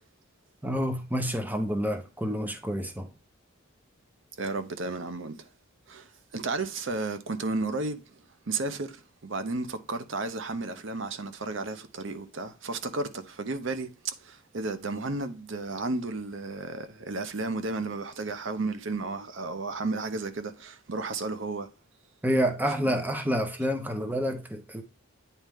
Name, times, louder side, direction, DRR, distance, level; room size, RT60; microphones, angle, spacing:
voice 1, 0.6-3.1 22.2-24.8, equal, 10° right, 0.8 m, -28 dB
voice 2, 4.4-5.5 5.9-21.7, right 3 dB, 60° right, 0.7 m, -33 dB
9.1 x 4.2 x 3.5 m
head